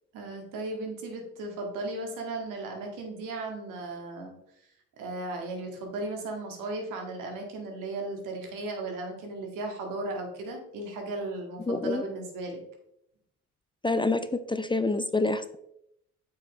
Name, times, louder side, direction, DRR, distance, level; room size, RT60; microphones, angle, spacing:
voice 1, 0.1-4.3 5.0-12.6, right 2 dB, 75° right, 2 dB, 2.0 m, -36 dB
voice 2, 11.7-12.0 13.8-15.6, left 2 dB, 15° left, 11 dB, 0.5 m, -27 dB
8.2 x 5.7 x 3.1 m, 0.77 s
supercardioid pair, 65°, 32 cm